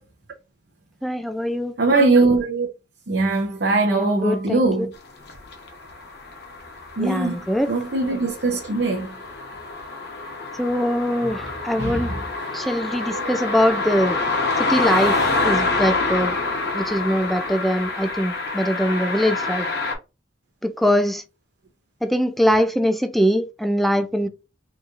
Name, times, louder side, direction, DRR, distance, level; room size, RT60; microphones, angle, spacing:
voice 1, 1.0-1.7 3.9-4.9 7.0-7.7 10.6-12.1 12.5-14.2 14.6-15.2 15.4-16.4 16.7-19.7 20.6-21.2 22.0-24.3, equal, ahead, 0.3 m, -22 dB
voice 2, 1.8-2.7 3.1-4.9 7.0-7.4 7.7-9.1 11.8-12.1 13.1-13.3, right 3 dB, 60° right, 0.7 m, -21 dB
sound 1, 5.3-20.0, left 3 dB, 60° left, 0.9 m, -27 dB
3.9 x 2.9 x 2.4 m
head